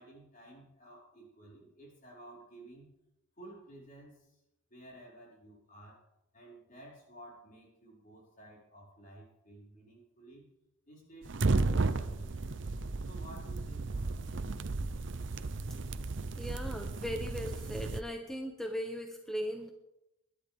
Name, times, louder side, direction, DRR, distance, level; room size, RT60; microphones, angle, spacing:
voice 1, 0.0-2.9 3.4-4.4 4.7-6.0 6.3-10.5 10.9-12.6 13.0-14.3, right 1 dB, 45° left, -4 dB, 5.6 m, -53 dB
sound 1, 11.2-18.0, right 3 dB, 65° right, 0.7 m, -34 dB
voice 2, 16.4-19.7, equal, ahead, 3 dB, 0.9 m, -38 dB
20.5 x 11.5 x 3.6 m, 0.89 s
head